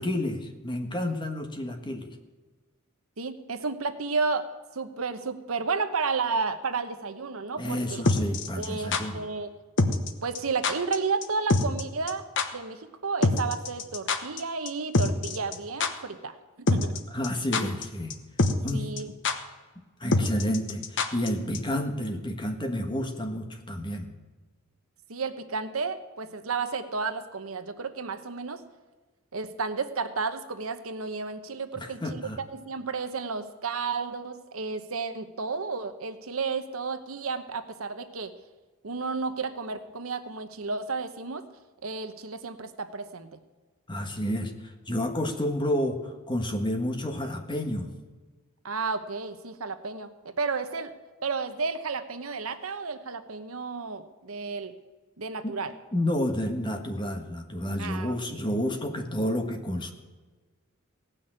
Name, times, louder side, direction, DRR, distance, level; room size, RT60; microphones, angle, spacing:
voice 1, 0.0-2.1 7.6-9.2 17.1-18.1 18.6-18.9 20.0-24.1 31.8-32.4 43.9-47.9 55.4-55.6 55.9-59.9, left 1 dB, 20° left, 5 dB, 1.4 m, -30 dB
voice 2, 3.2-4.5 4.7-8.0 8.6-9.5 10.2-12.2 12.5-17.0 18.7-19.1 25.1-28.6 29.3-38.3 38.8-41.4 41.8-43.4 48.6-50.9 51.2-54.7 55.2-55.7 57.8-58.5, right 4 dB, 80° right, 9 dB, 1.0 m, -32 dB
sound 1, 8.0-9.0 9.8-10.1 10.3-10.4 10.6-11.0 11.2-11.3 11.5-11.8 12.1-12.2 12.4-12.5 13.2-14.4 14.7-14.8 14.9-15.5 15.8-15.9 16.7-17.0 17.2-17.8 18.1-18.2 18.4-18.7 19.0-19.1 19.2-19.3 20.1-21.3 21.5-21.6, left 3 dB, 60° left, 1.0 m, -24 dB
17.0 x 6.3 x 8.8 m, 1.3 s
head